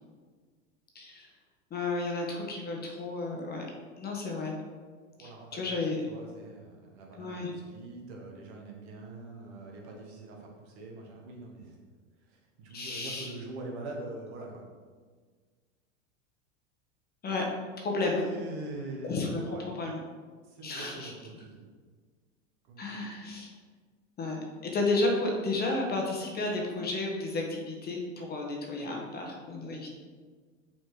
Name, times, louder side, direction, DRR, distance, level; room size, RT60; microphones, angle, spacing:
voice 1, 0.9-1.3 1.7-3.7 4.0-4.6 5.2-6.0 7.2-7.5 12.7-13.3 17.2-17.5 17.8-18.2 19.0-20.0 20.6-21.1 22.8-23.5 24.2-29.9, left 2 dB, 25° left, 0 dB, 1.3 m, -32 dB
voice 2, 5.2-5.8 6.1-11.8 12.3-14.7 18.0-19.6 20.4-21.6 22.6-23.1, right 2 dB, 60° right, 0 dB, 1.8 m, -43 dB
6.0 x 4.4 x 4.9 m, 1.5 s
hypercardioid pair, 110°, 38 cm